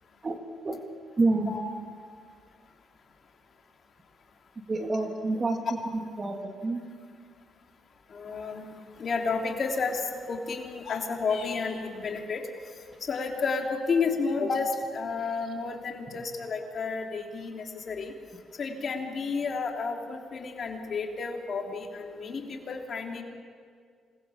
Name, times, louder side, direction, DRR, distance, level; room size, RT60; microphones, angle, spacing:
voice 1, 1.2-1.5 4.7-5.6 6.2-6.9, right 3 dB, 30° right, 4 dB, 2.8 m, -27 dB
voice 2, 8.1-12.4 13.0-18.1 18.6-23.2, left 4 dB, 50° left, 1 dB, 3.5 m, -31 dB
sound 1, 10.7-11.9, left 7 dB, 65° left, 4.1 m, -42 dB
27.0 x 20.5 x 7.4 m, 2.1 s
cardioid pair, 90°, 0 cm